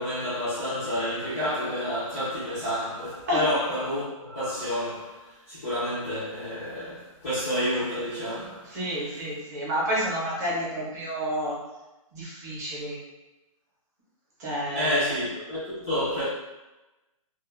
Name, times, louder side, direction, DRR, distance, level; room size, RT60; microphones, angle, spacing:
voice 1, 0.0-8.8 14.7-16.3, equal, 10° left, 0.3 m, -29 dB
voice 2, 8.7-11.6 12.1-13.0 14.4-15.1, equal, 30° right, 0.7 m, -29 dB
2.2 x 2.1 x 3.0 m
hypercardioid pair, 175°, 18 cm